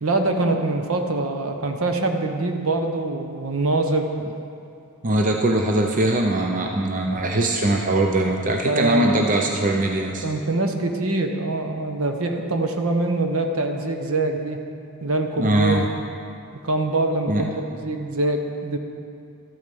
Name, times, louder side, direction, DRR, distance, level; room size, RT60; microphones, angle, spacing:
voice 1, 0.0-4.1 8.6-9.3 10.2-14.6 15.0-15.9 16.6-18.8, right 2 dB, 70° right, 4 dB, 1.0 m, -24 dB
voice 2, 5.0-10.2 15.4-15.9 17.3-17.5, right 1 dB, 35° right, 2 dB, 0.6 m, -21 dB
13.0 x 8.5 x 5.3 m, 2.5 s
head